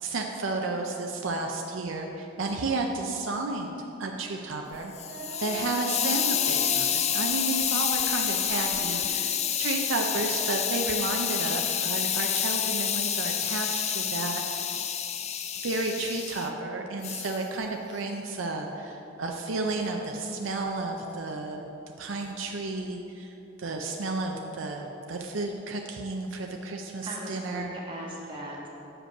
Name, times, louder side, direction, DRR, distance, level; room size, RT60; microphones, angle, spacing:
voice 1, 0.0-3.7 4.0-4.9 5.4-14.8 15.6-21.7 22.0-23.3 23.6-27.7, right 3 dB, 70° right, 2 dB, 0.6 m, -32 dB
Hiss, 4.7-16.5 17.0-17.4, left 9 dB, 35° left, 0.4 m, -29 dB
Female singing, 4.9-10.1, right 3 dB, 50° right, 0.9 m, -42 dB
voice 2, 8.9-9.7 27.0-28.7, equal, 25° right, -3 dB, 1.4 m, -40 dB
7.4 x 5.2 x 6.4 m, 3.0 s
head